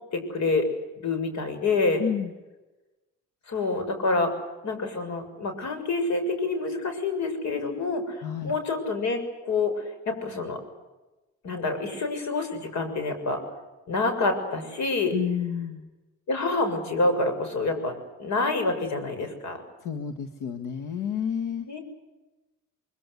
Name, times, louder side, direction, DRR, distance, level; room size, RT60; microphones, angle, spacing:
voice 1, 0.1-0.7 1.0-2.0 3.5-4.3 4.6-10.6 11.4-13.4 13.9-15.1 16.3-17.9 18.2-19.6 21.7-21.8, left 3 dB, 65° left, 8 dB, 7.0 m, -27 dB
voice 2, 2.0-2.3 8.2-8.6 15.1-15.9 19.8-21.7, left 8 dB, 90° left, 8 dB, 1.9 m, -30 dB
24.0 x 24.0 x 8.2 m, 1.1 s
cardioid pair, 90°, 30 cm